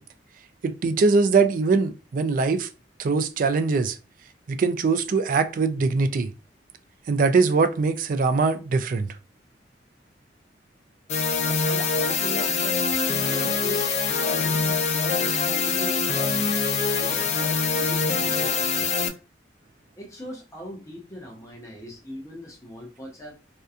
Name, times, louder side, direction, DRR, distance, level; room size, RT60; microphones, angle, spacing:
voice 1, 0.6-2.7 3.0-4.0 4.5-6.3 7.1-9.1, right 4 dB, 50° right, 0.3 m, -22 dB
sound 1, 11.1-19.1, left 5 dB, 40° left, 0.3 m, -24 dB
voice 2, 11.4-13.0 13.2-16.5 16.9-18.9 20.0-23.4, equal, 20° left, 0.7 m, -40 dB
2.7 x 2.2 x 2.4 m
head